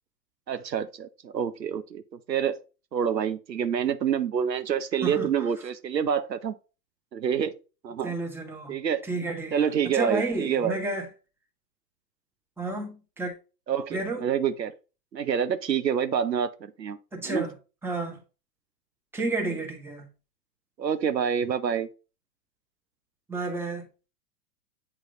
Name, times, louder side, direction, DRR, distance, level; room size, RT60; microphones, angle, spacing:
voice 1, 0.5-2.0 2.3-2.6 2.9-6.5 7.1-7.6 7.8-8.1 8.7-9.0 9.5-10.8 13.7-14.7 15.1-17.0 17.2-17.5 20.8-21.9, right 8 dB, 90° right, 0.7 m, -27 dB
voice 2, 8.0-8.8 9.1-11.1 12.6-13.3 13.9-14.3 17.1-17.5 17.8-18.2 19.1-20.1 23.3-23.9, right 2 dB, 5° right, 1.3 m, -31 dB
8.4 x 3.1 x 3.8 m
figure-of-eight pair, 105°, 49 cm